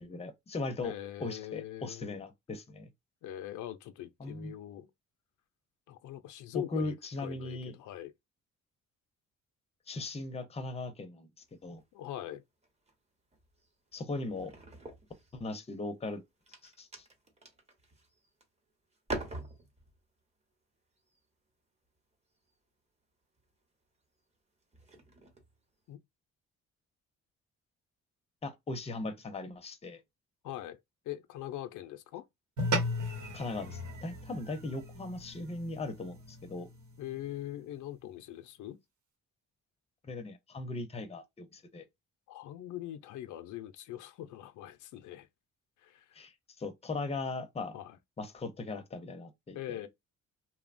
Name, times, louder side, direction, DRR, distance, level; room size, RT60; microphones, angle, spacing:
voice 1, 0.0-0.9 1.2-2.9 4.2-4.5 6.5-7.7 9.9-11.3 11.6-11.8 13.9-14.6 15.3-16.2 16.6-17.1 28.4-30.0 33.3-36.7 40.0-41.8 46.1-47.8 48.2-49.9, left 3 dB, 20° left, 0.6 m, -38 dB
voice 2, 0.8-2.1 3.2-4.9 5.9-8.1 11.9-12.4 25.9-26.0 30.4-30.8 31.1-32.2 37.0-38.8 42.3-45.3 45.8-46.2 47.7-48.0 49.5-49.9, left 13 dB, 75° left, 0.5 m, -42 dB
sound 1, 11.4-12.2 12.6-12.9 13.3-15.7 16.2-18.6 18.9-20.0 21.0-21.2 22.4-22.6 23.4-23.6 24.2-24.3 24.6-25.6, right 2 dB, 20° right, 0.9 m, -45 dB
sound 2, 32.6-37.2, equal, 75° right, 1.1 m, -37 dB
2.9 x 2.1 x 2.5 m
cardioid pair, 90°, 30 cm